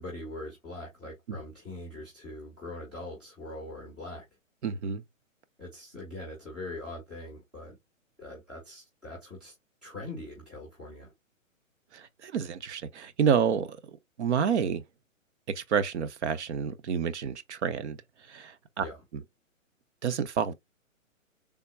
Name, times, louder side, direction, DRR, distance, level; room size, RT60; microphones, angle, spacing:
voice 1, 0.0-4.2 5.6-7.7 8.2-9.5 9.8-11.1 18.8-19.0, left 2 dB, ahead, 0.4 m, -42 dB
voice 2, 4.6-5.0 11.9-13.8 14.2-14.8 15.6-18.0 18.3-18.9 19.1-19.2 20.0-20.5, right 7 dB, 60° right, 0.6 m, -29 dB
3.5 x 2.2 x 3.9 m
hypercardioid pair, 140°, 40 cm